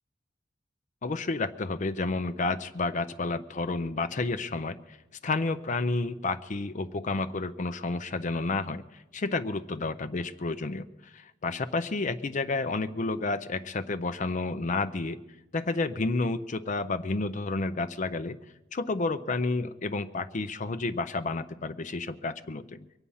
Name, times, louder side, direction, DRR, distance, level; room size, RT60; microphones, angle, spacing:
voice 1, 1.0-5.0 5.2-15.2 15.5-18.4 18.7-22.9, left 3 dB, 40° left, 11 dB, 0.5 m, -30 dB
24.0 x 8.5 x 5.5 m, 0.96 s
head